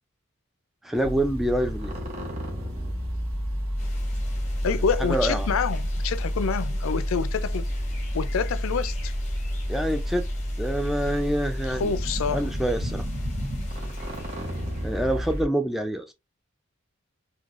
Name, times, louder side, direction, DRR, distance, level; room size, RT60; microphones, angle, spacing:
voice 1, 0.8-1.9 5.1-5.5 9.7-10.3 10.6-11.9 12.3-13.0 14.8-16.1, right 1 dB, ahead, 0.3 m, -26 dB
sound 1, 0.9-15.4, equal, 90° right, 1.2 m, -40 dB
sound 2, 1.0-15.5, equal, 35° right, 0.9 m, -30 dB
sound 3, 3.8-15.1, left 2 dB, 35° left, 0.9 m, -42 dB
voice 2, 4.6-7.7 8.1-9.1 11.7-12.5, left 6 dB, 75° left, 0.4 m, -27 dB
3.8 x 2.8 x 2.4 m
head